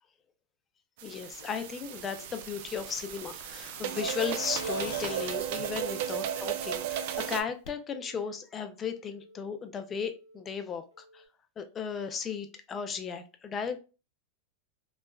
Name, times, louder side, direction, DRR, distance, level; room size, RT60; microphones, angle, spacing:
voice 1, 1.0-10.8 11.1-11.2 11.6-13.8, left 6 dB, 30° left, 9 dB, 0.4 m, -36 dB
sound 1, 1.0-7.4, right 9 dB, 65° right, 0.4 m, -35 dB
Telephone, 1.4-3.8 4.1-4.4 4.9-5.4 5.9-6.4 6.9-7.4 7.9-8.4 8.9-9.4 9.9-10.4 10.9-11.3, equal, 90° right, 0.9 m, -55 dB
Truck, 2.3-6.9 7.2-7.3 7.7-7.8, left 6 dB, 70° left, 0.6 m, -47 dB
3.1 x 2.1 x 2.2 m, 0.33 s
hypercardioid pair, 115°, 0 cm